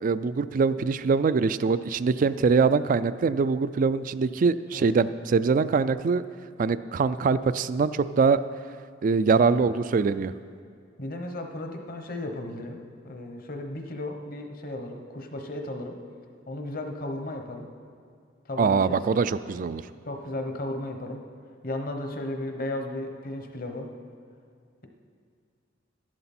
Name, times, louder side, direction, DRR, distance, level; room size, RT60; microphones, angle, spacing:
voice 1, 0.0-6.2 6.6-8.4 9.0-10.3 18.6-19.8, right 5 dB, 45° right, 14 dB, 0.3 m, -23 dB
voice 2, 9.3-9.7 11.0-16.0 16.5-17.7 18.4-19.3 20.1-21.2 21.6-23.9, left 1 dB, 50° left, 4 dB, 1.0 m, -35 dB
12.5 x 11.0 x 4.3 m, 2.2 s
head